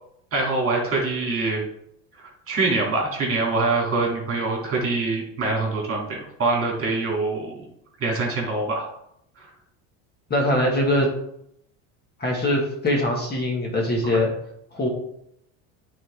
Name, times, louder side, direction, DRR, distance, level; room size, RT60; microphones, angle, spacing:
voice 1, 0.3-1.6 2.2-7.6 8.0-8.9 9.4-9.5 14.0-14.2, right 3 dB, 35° right, -1 dB, 2.5 m, -24 dB
voice 2, 10.3-11.1 12.2-14.3 14.7-14.9, left 1 dB, 25° left, -1 dB, 1.6 m, -22 dB
8.9 x 4.0 x 3.5 m, 0.75 s
supercardioid pair, 120°, 39 cm